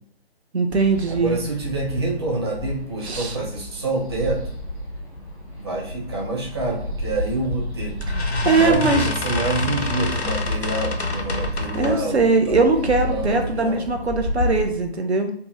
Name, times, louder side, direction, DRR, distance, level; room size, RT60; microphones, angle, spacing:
voice 1, 0.5-1.4 3.0-3.4 8.2-9.1 11.7-15.3, right 3 dB, 90° right, 5 dB, 0.6 m, -21 dB
sound 1, 0.7-14.6, left 1 dB, 10° right, 0.8 m, -31 dB
voice 2, 1.1-4.6 5.6-8.0 8.5-13.8, right 2 dB, 25° right, -3 dB, 0.3 m, -27 dB
sound 2, 7.3-7.5 8.0-12.1, left 2 dB, 85° left, 0.6 m, -27 dB
2.7 x 2.1 x 3.0 m, 0.65 s
figure-of-eight pair, 135°, 32 cm